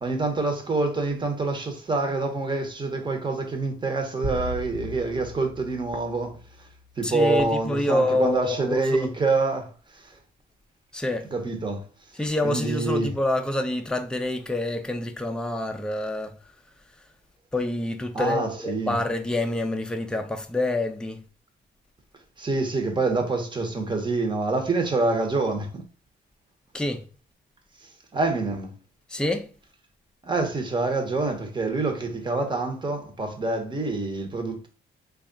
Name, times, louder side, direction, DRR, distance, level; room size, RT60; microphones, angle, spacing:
voice 1, 0.0-6.4 7.0-9.7 10.0-10.1 11.3-11.8 12.4-13.1 18.1-18.9 22.4-25.8 28.1-28.7 30.2-34.7, right 3 dB, 25° right, 0.9 m, -26 dB
sound 1, 4.2-6.9, equal, 60° right, 1.1 m, -37 dB
voice 2, 7.0-9.1 10.9-11.3 12.1-16.3 17.5-21.2 26.7-27.0 29.1-29.5, left 1 dB, 5° left, 0.5 m, -27 dB
3.2 x 2.4 x 3.8 m
cardioid pair, 90°, 20 cm